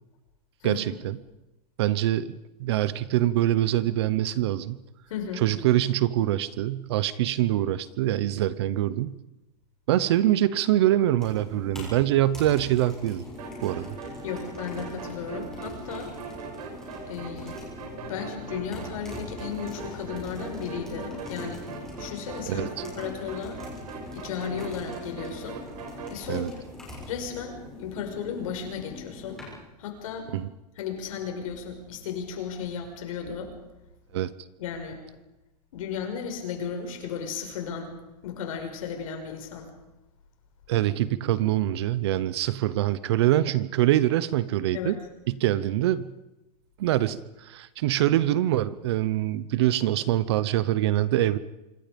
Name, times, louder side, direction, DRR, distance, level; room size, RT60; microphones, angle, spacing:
voice 1, 0.6-1.2 1.8-4.8 5.4-9.2 9.9-13.2 13.6-14.0 22.5-22.7 26.3-26.5 30.3-30.5 34.1-34.3 40.7-45.0 45.3-46.1 46.8-51.4, right 13 dB, 40° right, 17 dB, 0.8 m, -24 dB
voice 2, 5.1-5.4 14.2-16.2 17.1-17.6 18.0-21.7 22.0-23.6 24.1-25.6 26.1-26.6 27.1-29.4 29.8-30.3 30.8-33.5 34.6-35.0 35.7-37.9 38.2-39.7 44.7-44.9, left 7 dB, 55° left, 4 dB, 5.8 m, -35 dB
sound 1, 11.2-29.6, left 2 dB, ahead, 6.9 m, -42 dB
sound 2, 13.4-26.2, right 5 dB, 65° right, 6.2 m, -41 dB
26.5 x 24.5 x 5.2 m, 0.98 s
supercardioid pair, 180°, 21 cm